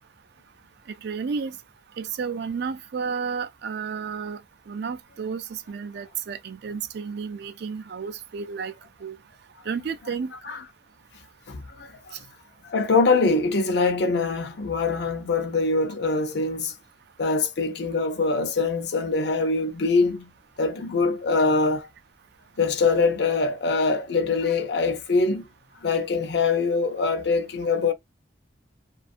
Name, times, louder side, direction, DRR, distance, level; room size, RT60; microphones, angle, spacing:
voice 1, 1.0-1.6 2.0-4.4 4.7-8.7 9.0-9.2 9.7-10.3, right 6 dB, 60° right, 0.4 m, -32 dB
voice 2, 11.5-12.1 12.6-16.7 17.2-20.3 20.6-21.9 22.6-25.5 25.8-27.9, left 4 dB, 65° left, 0.6 m, -23 dB
2.6 x 2.3 x 2.4 m
head